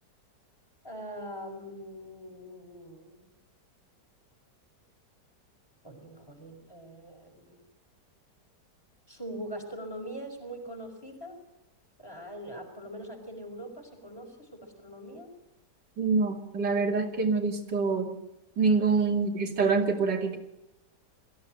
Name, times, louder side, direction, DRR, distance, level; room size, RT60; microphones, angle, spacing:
voice 1, 0.8-3.2 5.8-7.7 9.1-11.4 12.0-15.3 18.8-18.9, equal, 15° left, 4 dB, 5.3 m, -42 dB
voice 2, 16.0-18.2 18.6-20.4, right 4 dB, 85° right, 2 dB, 3.2 m, -26 dB
22.5 x 15.0 x 9.2 m, 0.90 s
omnidirectional pair, 1.9 m